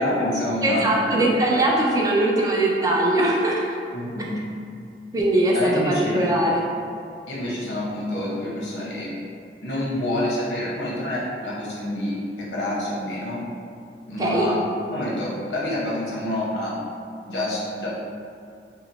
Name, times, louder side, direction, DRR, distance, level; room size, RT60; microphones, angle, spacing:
voice 1, 0.0-1.6 3.9-4.4 5.5-6.3 7.3-9.1 9.6-13.4 14.1-14.6 14.9-16.8 17.3-17.9, left 1 dB, 80° left, -5 dB, 0.8 m, -27 dB
voice 2, 0.6-3.7 5.1-6.6 14.2-14.5, right 1 dB, 20° right, -2 dB, 0.3 m, -21 dB
2.8 x 2.0 x 4.0 m, 2.3 s
head